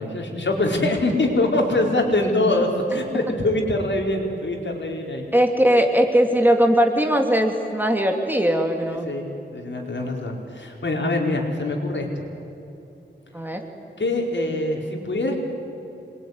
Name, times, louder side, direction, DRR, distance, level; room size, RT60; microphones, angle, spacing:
voice 1, 0.0-5.2 8.9-9.3 9.5-12.1 14.0-15.4, left 2 dB, 70° left, 1 dB, 4.6 m, -23 dB
voice 2, 5.3-9.1 13.3-13.6, equal, 10° right, 3 dB, 2.7 m, -19 dB
27.0 x 22.0 x 9.7 m, 3.0 s
wide cardioid pair, 95°, 19 cm